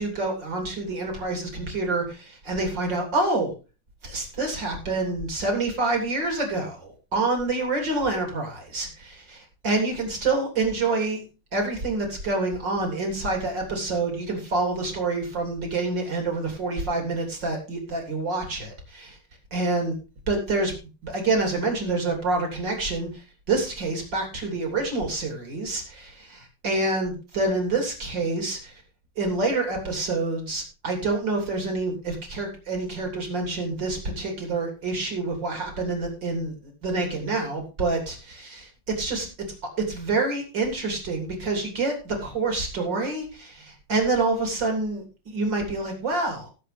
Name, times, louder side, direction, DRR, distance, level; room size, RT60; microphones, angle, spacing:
voice 1, 0.0-3.5 4.0-11.2 11.5-19.2 19.5-19.9 20.3-20.7 21.0-28.7 29.2-36.5 36.8-39.3 39.8-46.5, right 3 dB, 25° right, 2 dB, 3.0 m, -27 dB
18.5 x 7.6 x 3.3 m, 0.32 s
omnidirectional pair, 5.6 m